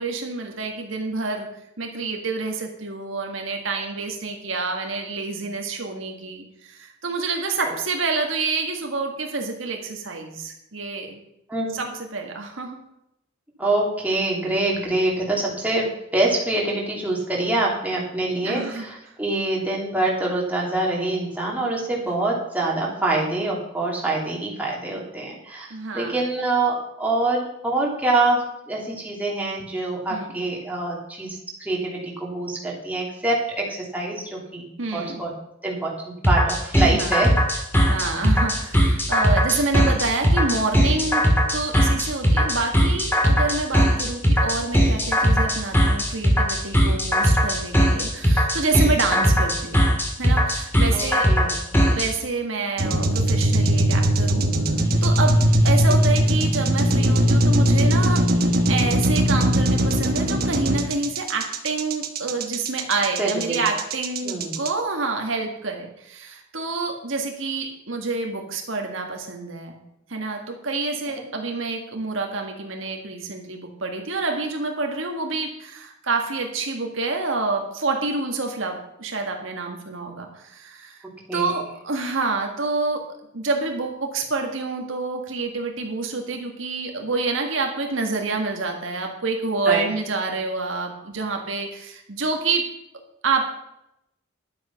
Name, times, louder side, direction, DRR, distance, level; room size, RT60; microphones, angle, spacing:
voice 1, 0.0-1.5 1.8-11.2 11.7-12.8 18.4-18.8 25.7-26.2 30.1-30.4 34.8-35.2 36.8-37.1 37.8-41.2 41.5-49.8 50.2-51.3 51.9-54.5 55.0-58.2 58.7-69.8 70.1-81.0 81.3-92.7 93.2-93.4, right 3 dB, 70° right, 2 dB, 1.7 m, -27 dB
voice 2, 11.5-11.9 13.6-34.6 34.9-35.3 35.6-37.3 50.9-51.6 55.9-56.0 63.2-63.6 64.2-64.5 71.2-71.3 81.3-81.6 89.7-89.8, right 2 dB, 10° right, -3 dB, 2.7 m, -25 dB
sound 1, 36.2-52.1, equal, 10° left, 2.1 m, -19 dB
sound 2, 52.8-64.7, equal, 50° right, 1.3 m, -20 dB
11.0 x 8.1 x 5.7 m, 0.82 s
head